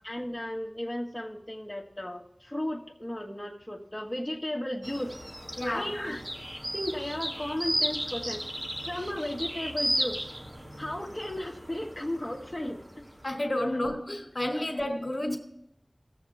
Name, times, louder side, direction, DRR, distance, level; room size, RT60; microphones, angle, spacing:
voice 1, 0.0-5.1 5.6-6.2 6.7-8.4 8.8-10.3 10.8-13.0 14.7-14.9, left 1 dB, 15° left, 1.3 m, -35 dB
sound 1, 4.8-13.2, equal, 30° right, 1.5 m, -35 dB
voice 2, 5.6-5.9 13.2-15.4, left 1 dB, 55° left, 1.8 m, -30 dB
17.5 x 7.3 x 3.5 m
wide cardioid pair, 50°, 0 cm